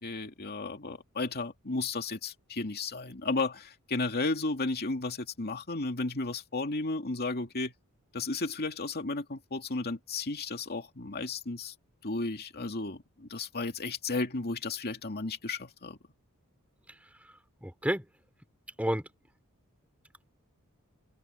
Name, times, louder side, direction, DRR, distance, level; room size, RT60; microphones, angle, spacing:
voice 1, 0.0-7.7 8.1-11.7 12.0-16.0, left 3 dB, 45° left, 2.5 m, -33 dB
voice 2, 16.9-18.1 18.8-19.1, equal, 5° right, 4.7 m, -33 dB
head